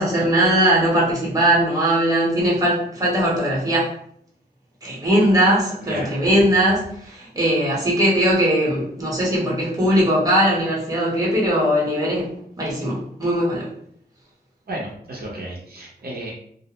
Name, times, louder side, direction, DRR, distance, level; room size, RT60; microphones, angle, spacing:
voice 1, 0.0-3.9 4.8-12.3 12.6-13.7, right 1 dB, 20° right, -5 dB, 0.9 m, -19 dB
voice 2, 14.7-16.3, right 1 dB, 65° right, -3 dB, 0.6 m, -32 dB
2.4 x 2.0 x 2.9 m, 0.66 s
wide cardioid pair, 120°, 17 cm